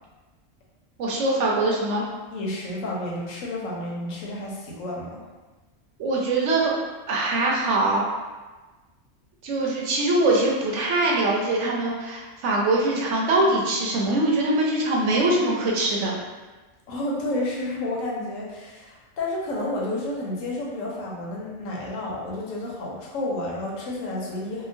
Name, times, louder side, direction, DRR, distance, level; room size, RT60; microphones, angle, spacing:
voice 1, 1.0-2.0 6.0-6.8 7.1-8.0 9.4-16.2, right 2 dB, 70° right, -2 dB, 0.9 m, -22 dB
voice 2, 2.3-5.2 16.9-24.7, left 1 dB, 90° left, -4 dB, 1.1 m, -30 dB
2.8 x 2.3 x 2.6 m, 1.3 s
omnidirectional pair, 1.3 m